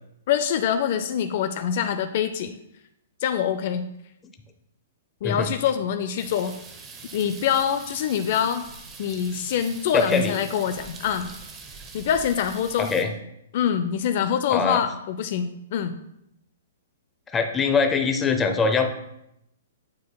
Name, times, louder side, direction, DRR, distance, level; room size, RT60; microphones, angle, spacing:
voice 1, 0.3-2.6 3.2-3.9 5.2-6.5 7.1-8.7 9.0-11.3 11.9-12.9 13.5-15.9, left 8 dB, 50° left, 9 dB, 0.4 m, -25 dB
sound 1, 6.2-13.0, right 4 dB, 20° right, 0.8 m, -43 dB
voice 2, 9.9-10.4 12.8-13.1 14.5-14.8 17.3-18.9, left 5 dB, 15° left, 5 dB, 0.6 m, -22 dB
9.3 x 4.5 x 2.2 m, 0.81 s
hypercardioid pair, 140°, 0 cm